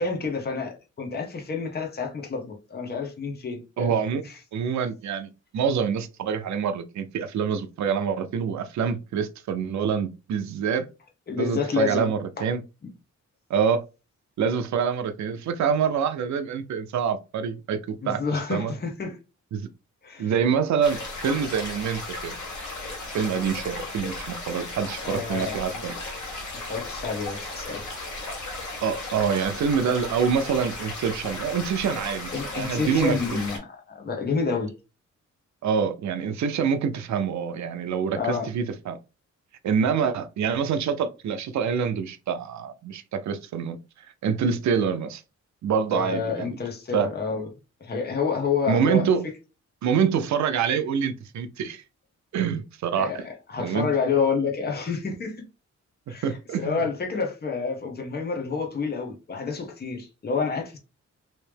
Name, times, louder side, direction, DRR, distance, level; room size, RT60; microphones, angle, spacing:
voice 1, 0.0-3.9 4.2-4.3 11.3-12.4 18.0-19.2 20.0-20.3 25.0-25.6 26.6-27.9 32.3-34.7 38.1-38.5 45.9-47.5 47.8-49.0 53.0-53.2 53.5-55.4 56.1-56.3 56.6-60.8, left 5 dB, 35° left, 0.8 m, -29 dB
voice 2, 3.8-4.2 4.5-10.9 11.4-12.6 13.5-13.8 14.4-18.2 18.5-18.7 19.5-19.7 20.2-22.3 23.1-25.9 28.8-33.2 35.6-39.0 39.6-43.8 44.2-45.2 45.6-46.5 46.9-47.1 48.7-49.3 49.8-51.8 52.3-53.1 53.6-53.9 56.1-56.9, right 7 dB, 70° right, 0.5 m, -26 dB
sound 1, 20.8-33.6, left 2 dB, 75° left, 1.4 m, -35 dB
3.2 x 2.7 x 3.3 m
wide cardioid pair, 145°, 30 cm